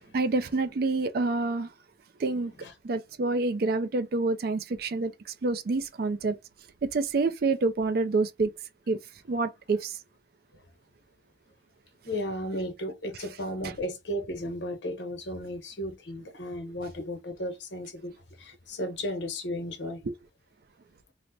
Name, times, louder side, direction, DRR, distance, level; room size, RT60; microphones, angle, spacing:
voice 1, 0.1-1.7 2.2-2.5 2.8-6.4 6.8-8.5 8.9-9.0 9.3-10.0 13.1-13.3 13.6-13.8 20.0-20.2, right 3 dB, 55° right, 0.4 m, -27 dB
voice 2, 12.0-18.1 18.4-20.0, equal, 75° left, 1.0 m, -34 dB
3.2 x 2.1 x 4.0 m
head